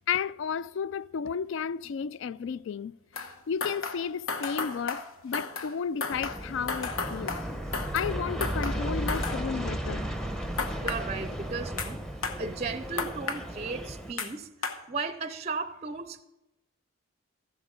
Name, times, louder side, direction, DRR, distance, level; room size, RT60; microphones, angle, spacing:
voice 1, 0.1-2.9 3.5-7.4 7.9-10.1, left 6 dB, 60° left, 0.3 m, -32 dB
sound 1, 3.1-3.4 3.6-5.8 6.0-8.2 8.4-9.4 10.6-11.0 11.8-11.9 12.2-12.4 13.0-13.4 14.2-14.3 14.6-14.8, left 4 dB, 85° left, 1.1 m, -33 dB
Aircraft, 6.1-14.1, right 1 dB, 5° left, 0.7 m, -35 dB
voice 2, 10.8-12.0 12.4-14.5 14.9-16.2, right 4 dB, 30° right, 0.5 m, -35 dB
14.5 x 8.0 x 5.2 m
head